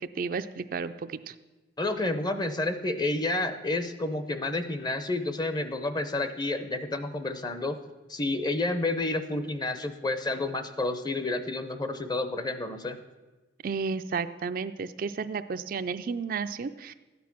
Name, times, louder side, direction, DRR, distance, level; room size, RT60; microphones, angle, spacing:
voice 1, 0.0-1.3 13.6-16.9, right 5 dB, 45° right, 10 dB, 0.4 m, -32 dB
voice 2, 1.8-7.8 8.1-13.0, left 2 dB, 20° left, 10 dB, 0.6 m, -30 dB
13.0 x 9.4 x 5.9 m, 1.2 s
head